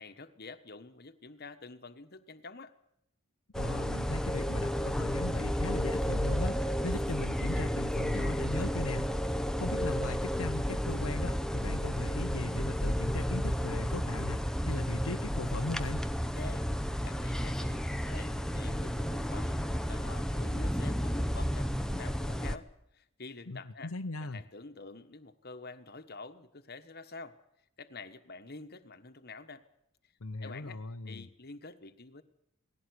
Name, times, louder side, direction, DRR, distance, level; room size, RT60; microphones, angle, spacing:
voice 1, 0.0-2.7 16.2-16.7 17.0-22.7 22.9-23.9 24.2-27.4 27.8-29.6 30.4-32.2, left 3 dB, 45° left, 10 dB, 1.3 m, -48 dB
sound 1, 3.5-22.6, equal, ahead, 0.8 m, -32 dB
voice 2, 3.6-9.1 9.6-16.0 23.5-24.4 30.2-31.3, left 3 dB, 70° left, 6 dB, 0.9 m, -39 dB
19.0 x 16.5 x 9.6 m, 0.79 s
head